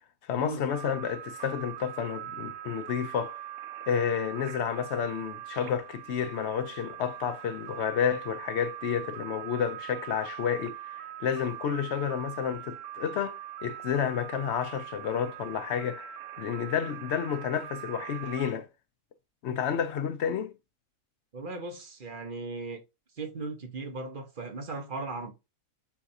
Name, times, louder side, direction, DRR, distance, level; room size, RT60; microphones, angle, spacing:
voice 1, 0.2-3.4 3.9-18.7 19.4-20.5, left 8 dB, 65° left, 0.7 m, -30 dB
sound 1, 0.7-18.5, right 12 dB, 70° right, 0.9 m, -42 dB
voice 2, 21.3-22.8 23.1-25.3, right 3 dB, 45° right, 0.9 m, -37 dB
7.1 x 2.5 x 2.7 m
omnidirectional pair, 1.4 m